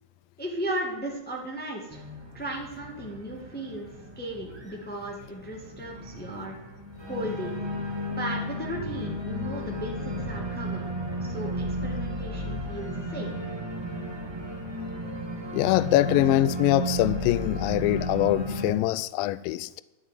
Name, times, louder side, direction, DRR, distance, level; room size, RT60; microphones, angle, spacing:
voice 1, 0.4-2.0 2.3-3.9 4.1-6.6 7.0-7.5 8.1-10.9 11.2-13.3, right 1 dB, 10° left, 0.6 m, -35 dB
Organ, 1.9-18.7, equal, 15° right, 0.9 m, -34 dB
voice 2, 15.5-19.7, left 15 dB, 90° left, 2.0 m, -23 dB
13.0 x 8.4 x 9.2 m
omnidirectional pair, 4.7 m